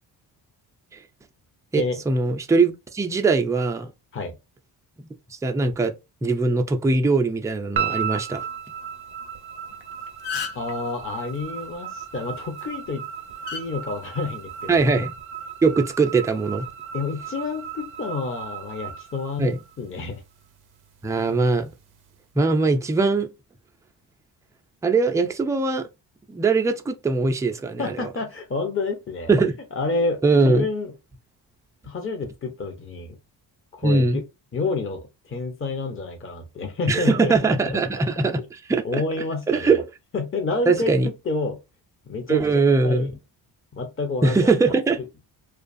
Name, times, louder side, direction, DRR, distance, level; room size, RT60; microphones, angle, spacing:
voice 1, 1.7-3.9 5.4-5.9 6.2-8.5 14.7-15.1 15.6-16.6 19.4-19.6 21.0-21.7 22.4-23.3 24.8-25.9 26.3-27.8 29.3-29.5 30.2-30.7 33.8-34.2 36.9-38.4 38.7-39.0 39.5-39.8 40.7-41.1 42.3-43.1 44.2-45.0, right 3 dB, 10° right, 0.3 m, -21 dB
sound 1, 7.8-20.1, right 8 dB, 50° right, 0.6 m, -35 dB
sound 2, 9.7-9.8 10.1-10.7 12.4-12.6 13.5-13.6 14.7-14.9, left 7 dB, 60° left, 0.7 m, -31 dB
voice 2, 10.5-13.0 13.5-15.0 16.9-20.2 27.8-29.3 29.7-30.9 31.8-33.2 33.7-34.2 34.5-37.8 38.8-39.8 40.1-40.9 41.2-41.6 42.1-42.4 42.8-43.1 43.7-44.5 45.0-45.1, left 3 dB, 25° left, 0.7 m, -29 dB
2.5 x 2.3 x 2.5 m
cardioid pair, 65°, 48 cm